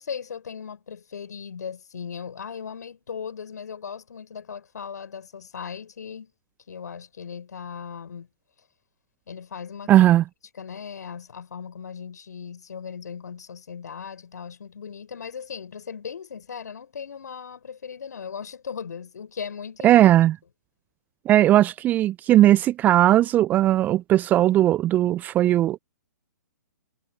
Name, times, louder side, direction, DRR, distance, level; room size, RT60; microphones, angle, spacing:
voice 1, 0.0-6.3 6.7-8.3 9.3-9.9 10.6-20.0, left 7 dB, 65° left, 6.2 m, -37 dB
voice 2, 9.9-10.2 19.8-20.3 21.3-25.8, right 13 dB, 15° right, 0.3 m, -18 dB
figure-of-eight pair, 120°, 10 cm